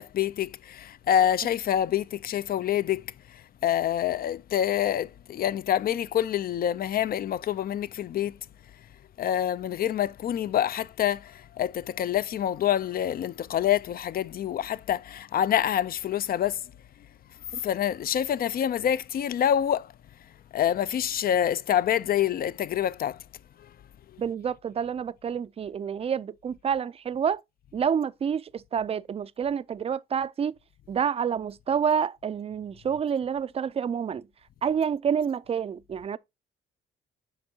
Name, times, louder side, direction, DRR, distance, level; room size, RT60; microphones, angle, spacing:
voice 1, 0.0-3.0 3.3-8.3 9.2-16.6 17.5-19.9 20.5-23.2, left 10 dB, 50° left, 0.4 m, -26 dB
voice 2, 24.2-27.4 27.7-30.5 30.9-34.3 34.6-36.2, right 7 dB, 30° right, 0.4 m, -28 dB
8.0 x 5.2 x 2.7 m
cardioid pair, 90°, 20 cm